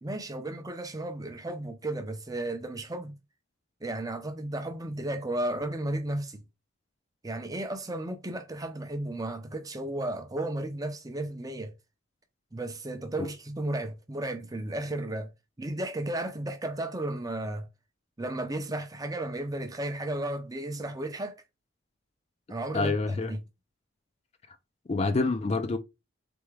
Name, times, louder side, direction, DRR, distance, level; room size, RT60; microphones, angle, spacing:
voice 1, 0.0-3.1 3.8-6.4 7.2-11.7 12.5-15.3 15.6-17.7 18.2-21.3 22.5-23.4, right 1 dB, 15° right, 0.6 m, -34 dB
voice 2, 22.7-23.3 24.9-25.8, left 3 dB, 30° left, 0.4 m, -27 dB
4.1 x 3.5 x 3.2 m
head